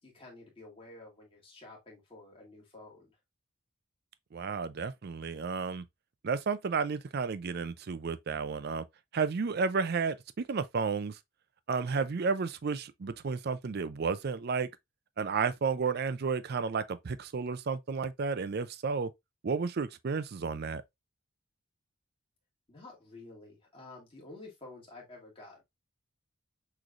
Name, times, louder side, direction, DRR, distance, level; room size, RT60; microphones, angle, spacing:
voice 1, 0.0-3.1 22.7-25.6, left 2 dB, 25° left, 1.8 m, -50 dB
voice 2, 4.3-5.9 6.2-8.8 9.1-11.2 11.7-14.7 15.2-19.1 19.4-20.8, right 5 dB, 45° right, 0.4 m, -32 dB
6.2 x 3.2 x 2.4 m
head